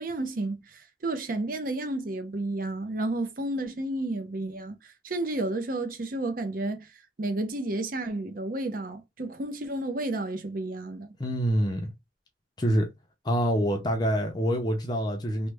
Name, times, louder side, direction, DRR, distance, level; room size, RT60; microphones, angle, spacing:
voice 1, 0.0-6.9 7.2-11.1, right 2 dB, 50° right, 0.6 m, -31 dB
voice 2, 11.2-11.9 12.6-12.9 13.2-15.5, equal, 20° left, 0.5 m, -26 dB
3.0 x 2.1 x 3.3 m
head